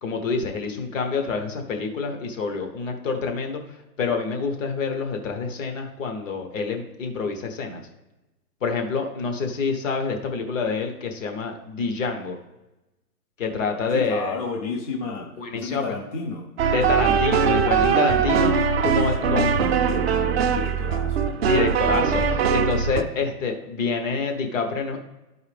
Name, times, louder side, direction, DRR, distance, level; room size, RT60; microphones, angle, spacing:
voice 1, 0.0-3.6 4.0-7.8 8.6-12.4 13.4-14.3 15.4-15.8 16.7-18.5 18.8-19.5 21.4-25.0, left 4 dB, 55° left, 4 dB, 1.3 m, -27 dB
voice 2, 13.9-16.5 19.0-21.3, left 4 dB, 25° left, 0 dB, 0.6 m, -33 dB
sound 1, 16.6-23.0, right 6 dB, 40° right, 0.5 m, -21 dB
12.0 x 4.7 x 3.4 m, 1.0 s
hypercardioid pair, 140°, 47 cm